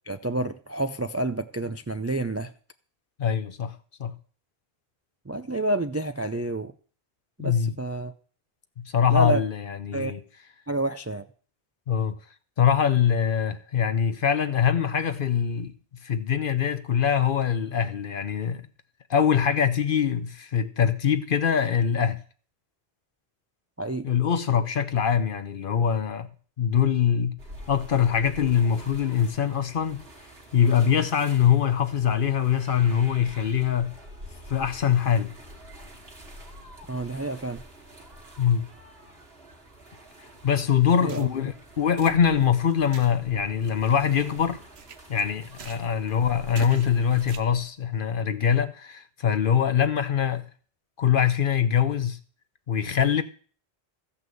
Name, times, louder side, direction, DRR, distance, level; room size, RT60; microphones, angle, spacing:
voice 1, 0.1-2.5 5.3-6.7 7.4-8.1 9.1-9.4 9.9-10.1 10.7-11.2 23.8-24.1 36.9-37.6 41.0-41.3, right 1 dB, 25° right, 0.4 m, -29 dB
voice 2, 3.2-4.1 7.4-7.7 8.8-10.2 11.9-12.1 12.6-15.7 16.0-18.6 19.1-22.2 24.0-26.3 26.6-27.3 27.7-30.0 30.5-33.9 34.5-35.3 38.4-38.7 40.4-44.6 45.1-50.4 51.0-52.2 52.7-53.2, left 8 dB, 60° left, 0.9 m, -23 dB
sound 1, 27.4-47.3, right 1 dB, 70° right, 2.7 m, -47 dB
sound 2, 40.3-47.7, right 6 dB, 85° right, 1.1 m, -47 dB
14.0 x 5.7 x 7.8 m
omnidirectional pair, 1.1 m